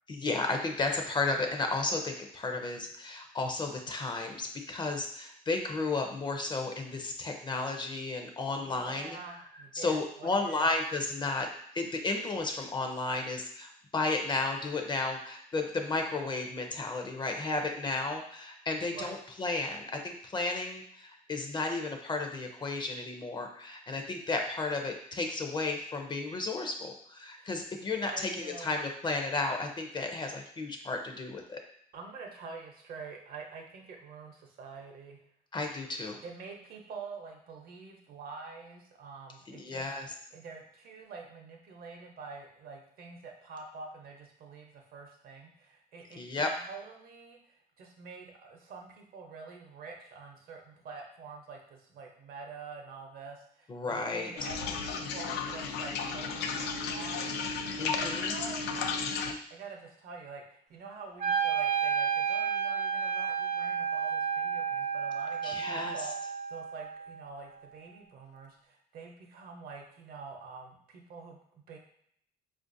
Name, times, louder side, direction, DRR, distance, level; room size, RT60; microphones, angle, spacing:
voice 1, 0.1-9.2 9.7-11.5 11.7-31.6 35.5-36.2 39.5-40.1 46.2-46.5 53.7-54.3 57.8-58.3 65.4-66.0, left 3 dB, 25° left, 4 dB, 0.5 m, -33 dB
voice 2, 8.6-10.8 18.9-19.2 27.4-27.5 28.0-28.7 31.9-35.2 36.2-39.8 40.3-71.8, right 4 dB, 60° right, 2 dB, 0.8 m, -46 dB
sound 1, 54.4-59.3, left 5 dB, 80° left, 0.4 m, -34 dB
Wind instrument woodwind instrument, 61.2-67.3, right 7 dB, 45° right, 0.4 m, -31 dB
4.2 x 2.5 x 2.6 m, 0.67 s
cardioid pair, 110°, 17 cm